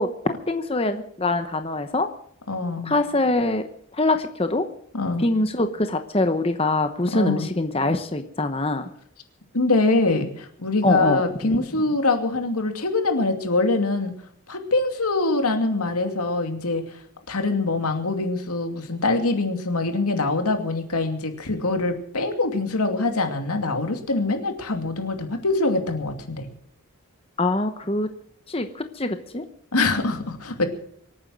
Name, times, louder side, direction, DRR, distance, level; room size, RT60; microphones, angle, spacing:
voice 1, 0.0-2.1 2.8-3.6 3.9-4.6 5.2-8.9 10.8-11.2 11.5-11.6 27.4-28.1 28.5-29.4, left 2 dB, 25° left, 8 dB, 0.9 m, -24 dB
voice 2, 2.5-2.9 4.9-5.3 7.1-7.5 9.5-14.1 14.5-16.8 17.3-26.5 29.7-30.6, left 3 dB, 90° left, 5 dB, 2.5 m, -24 dB
25.0 x 9.3 x 6.2 m, 0.65 s
head